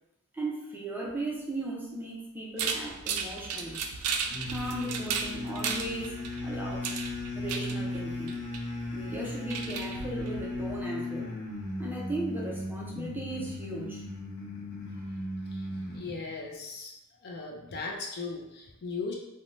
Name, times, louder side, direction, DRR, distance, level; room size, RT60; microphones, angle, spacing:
voice 1, 0.3-3.8 4.5-6.1 6.4-6.9 7.3-8.4 8.9-11.3 11.8-14.0, right 2 dB, 10° right, -4 dB, 0.5 m, -37 dB
sound 1, 2.6-10.8, right 6 dB, 80° right, 0.3 m, -36 dB
sound 2, 4.3-16.2, left 2 dB, 85° left, 1.0 m, -36 dB
voice 2, 14.9-15.2 15.5-16.9 17.2-19.1, left 4 dB, 50° left, 0 dB, 0.5 m, -38 dB
2.6 x 2.2 x 3.0 m, 0.86 s
head